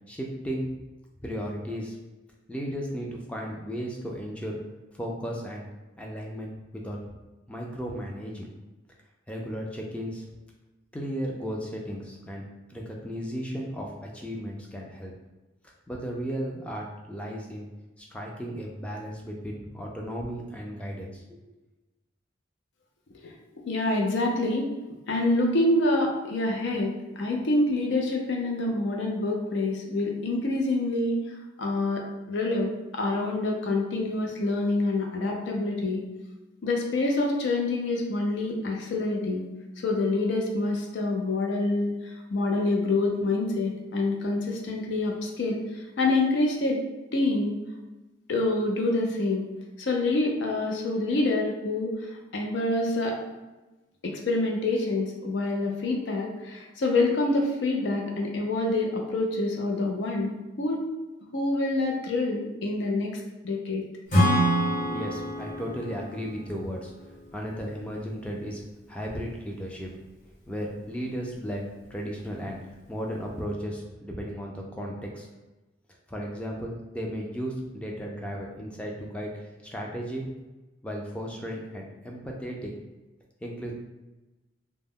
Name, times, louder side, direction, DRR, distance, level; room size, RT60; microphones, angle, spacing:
voice 1, 0.1-0.7 1.2-2.0 2.5-4.6 4.9-5.7 6.0-7.0 7.5-8.5 9.3-10.2 10.9-12.4 12.7-15.1 15.9-17.7 18.0-21.4 64.9-66.9 67.3-68.6 68.9-69.9 70.5-75.3 76.1-80.2 80.8-82.7 83.4-83.7, equal, 5° left, -1 dB, 0.3 m, -35 dB
voice 2, 23.6-24.7 25.1-32.0 32.3-36.0 36.6-39.4 39.8-46.8 47.1-47.6 48.3-49.4 49.8-53.2 54.0-60.3 60.6-60.8 61.3-63.1 63.4-63.8, left 2 dB, 70° left, 0 dB, 0.4 m, -26 dB
Acoustic guitar / Strum, 64.1-67.7, equal, 40° left, 1.0 m, -26 dB
2.1 x 2.0 x 3.5 m, 1.1 s
head